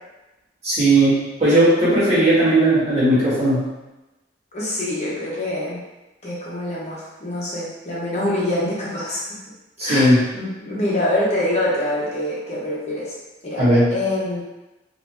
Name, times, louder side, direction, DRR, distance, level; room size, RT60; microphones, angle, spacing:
voice 1, 0.6-3.6 9.8-10.2 13.6-13.9, right 1 dB, 35° right, -10 dB, 1.4 m, -17 dB
voice 2, 4.5-5.8 6.2-9.2 9.8-13.1 13.4-13.6 13.9-14.4, left 1 dB, 40° left, -7 dB, 0.8 m, -25 dB
2.8 x 2.6 x 3.3 m, 1.0 s
head